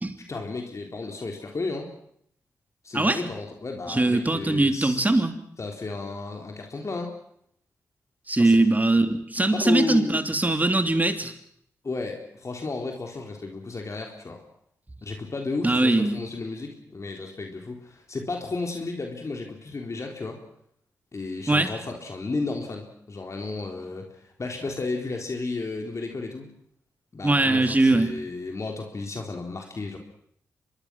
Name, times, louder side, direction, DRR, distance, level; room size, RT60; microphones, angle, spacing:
voice 1, 0.3-1.9 2.8-5.1 5.6-7.1 8.4-8.6 9.5-10.2 11.8-14.4 15.0-20.4 21.1-26.5 27.1-30.0, left 3 dB, 45° left, 2 dB, 3.7 m, -33 dB
voice 2, 3.9-5.3 8.3-11.3 15.6-16.2 21.5-21.7 27.2-28.1, right 2 dB, 25° right, 7 dB, 3.1 m, -21 dB
25.0 x 21.5 x 6.3 m, 0.69 s
supercardioid pair, 40°, 7 cm